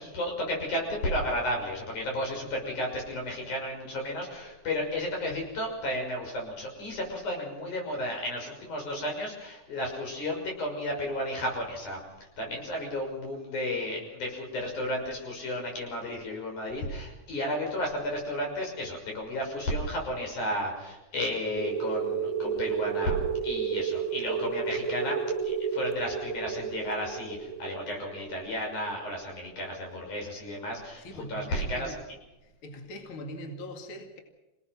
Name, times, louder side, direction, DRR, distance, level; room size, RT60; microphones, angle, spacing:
voice 1, 0.0-12.0 12.4-25.2 25.4-31.9, left 1 dB, 85° left, 1 dB, 7.6 m, -33 dB
sound 1, 21.6-29.9, right 6 dB, 15° right, 1.2 m, -32 dB
voice 2, 31.0-32.0 32.4-34.2, equal, 45° left, 4 dB, 2.9 m, -42 dB
27.5 x 18.5 x 6.1 m, 1.0 s
omnidirectional pair, 3.4 m